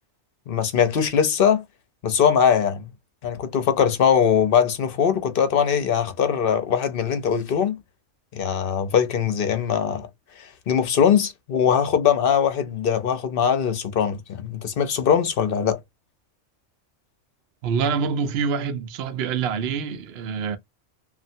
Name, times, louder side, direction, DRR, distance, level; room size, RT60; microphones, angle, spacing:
voice 1, 0.5-1.6 2.0-2.9 3.2-7.8 8.3-10.1 10.4-15.8, left 7 dB, 55° left, 0.8 m, -21 dB
voice 2, 17.6-20.6, right 6 dB, 65° right, 0.8 m, -26 dB
3.2 x 2.5 x 2.7 m
omnidirectional pair, 1.2 m